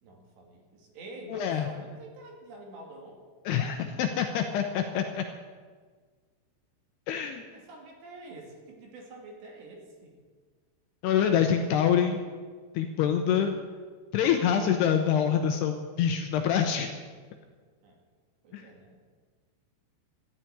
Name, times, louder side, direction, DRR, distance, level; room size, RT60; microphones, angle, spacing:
voice 1, 0.0-3.2 7.5-10.1 17.8-18.0 18.4-19.0, right 2 dB, 65° right, 0 dB, 4.2 m, -47 dB
voice 2, 1.3-1.7 3.5-5.2 7.1-7.4 11.0-12.2 12.7-13.6 14.1-16.9 18.5-18.7, left 8 dB, 75° left, 5 dB, 2.5 m, -26 dB
13.5 x 7.4 x 10.0 m, 1.5 s
omnidirectional pair, 5.4 m